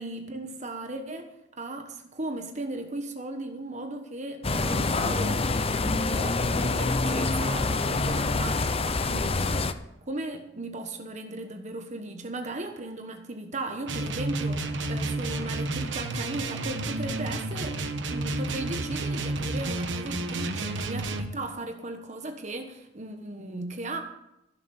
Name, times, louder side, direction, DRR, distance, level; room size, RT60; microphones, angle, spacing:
voice 1, 0.0-9.7 10.1-24.0, right 2 dB, 40° right, 5 dB, 1.2 m, -37 dB
sound 1, 4.4-9.7, left 3 dB, 30° left, 0.6 m, -26 dB
sound 2, 13.8-21.3, right 2 dB, 70° right, 1.2 m, -31 dB
15.0 x 6.7 x 7.1 m, 0.88 s
head